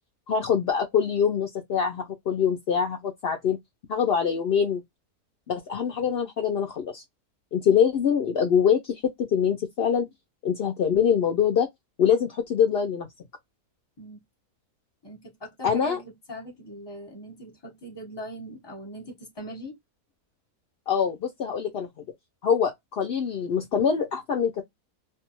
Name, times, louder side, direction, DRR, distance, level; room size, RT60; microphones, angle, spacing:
voice 1, 0.3-3.6 3.9-4.8 5.5-7.0 7.5-10.1 10.4-11.7 12.0-13.1 15.6-16.0 20.9-21.9 22.4-24.6, left 7 dB, 70° left, 0.5 m, -24 dB
voice 2, 15.0-19.8, equal, 20° left, 1.0 m, -41 dB
2.6 x 2.2 x 2.8 m
omnidirectional pair, 1.6 m